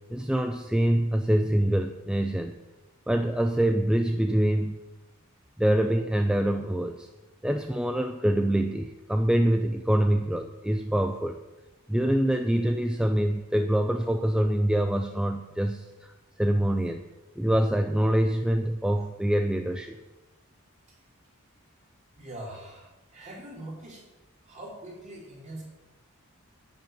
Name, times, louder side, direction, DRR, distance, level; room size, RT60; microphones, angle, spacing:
voice 1, 0.1-2.6 3.1-4.8 5.6-7.1 7.4-11.4 11.9-17.0 17.4-20.0, right 1 dB, 5° right, 6 dB, 0.5 m, -25 dB
voice 2, 22.2-24.0 24.5-25.6, right 1 dB, 35° right, -4 dB, 4.6 m, -42 dB
11.0 x 7.7 x 9.3 m, 1.1 s
head